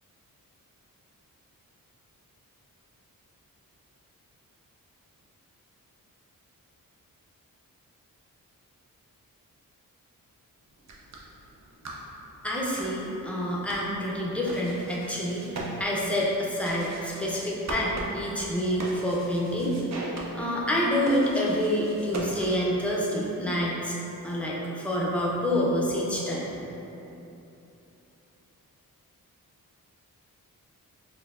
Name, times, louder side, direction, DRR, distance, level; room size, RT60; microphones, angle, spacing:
sound 1, 10.7-22.8, right 2 dB, 50° right, 0.6 m, -41 dB
voice 1, 12.4-15.5 15.8-19.8 20.3-24.0 24.2-26.5, equal, 5° left, -5 dB, 0.6 m, -27 dB
4.3 x 2.7 x 2.4 m, 3.0 s
wide cardioid pair, 85°, 35 cm